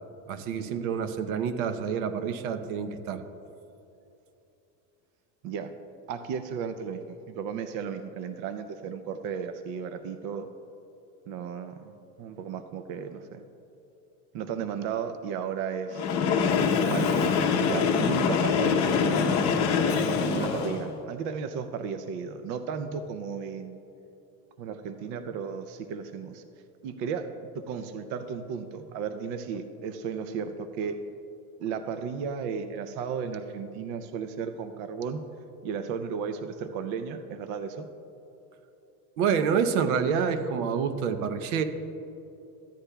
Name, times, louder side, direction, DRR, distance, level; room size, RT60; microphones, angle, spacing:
voice 1, 0.3-3.2 39.2-41.6, right 6 dB, 80° right, 9 dB, 0.8 m, -27 dB
voice 2, 6.1-10.5 11.3-13.4 14.3-19.4 20.2-23.8 24.6-26.4 26.8-31.0 31.6-35.2 35.6-37.9, right 6 dB, 45° right, 9 dB, 0.5 m, -34 dB
Train, 15.9-20.9, left 5 dB, 40° left, 0.8 m, -24 dB
14.5 x 9.8 x 2.2 m, 2.9 s
cardioid pair, 160°, 42 cm